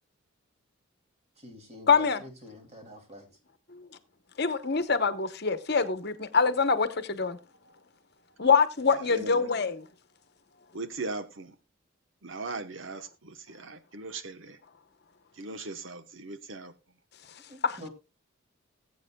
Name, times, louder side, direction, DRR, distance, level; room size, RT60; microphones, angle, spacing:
voice 1, 1.4-3.3 17.5-17.9, left 1 dB, 30° right, 2.6 m, -47 dB
voice 2, 1.9-2.2 3.7-3.9 4.4-7.4 8.4-9.8 17.6-17.9, left 5 dB, 55° left, 1.0 m, -25 dB
voice 3, 9.0-9.5 10.7-11.5 12.2-14.6 15.4-16.7, right 3 dB, 65° right, 1.0 m, -39 dB
20.5 x 8.3 x 2.3 m
head